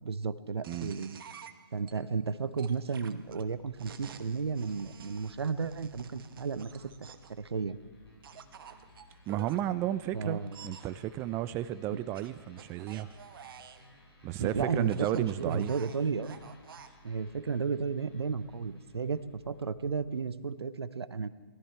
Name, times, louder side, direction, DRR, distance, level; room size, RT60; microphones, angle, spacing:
voice 1, 0.0-1.2 1.7-7.8 10.1-10.7 14.4-16.4 17.0-21.3, right 5 dB, 85° right, 15 dB, 0.7 m, -33 dB
sound 1, 0.6-1.9 2.6-7.4 8.2-9.6 10.5-10.9 12.1-13.9 14.8-16.9, right 7 dB, 60° right, 1.0 m, -50 dB
sound 2, 3.2-20.0, left 1 dB, 85° left, 5.3 m, -58 dB
voice 2, 9.3-13.1 14.2-15.7, right 13 dB, 20° right, 14 dB, 0.3 m, -33 dB
19.0 x 12.5 x 4.4 m, 1.5 s
hypercardioid pair, 130°, 13 cm